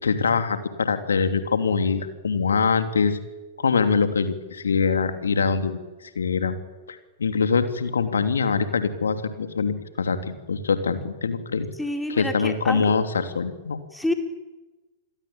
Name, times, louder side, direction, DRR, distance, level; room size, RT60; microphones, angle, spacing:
voice 1, 0.0-3.2 3.6-6.5 6.9-11.7 12.1-13.8, left 5 dB, 75° left, 9 dB, 3.1 m, -24 dB
voice 2, 11.8-12.9 13.9-14.1, left 1 dB, 5° left, 5 dB, 4.3 m, -28 dB
28.0 x 21.5 x 8.9 m, 1.1 s
figure-of-eight pair, 105°, 0 cm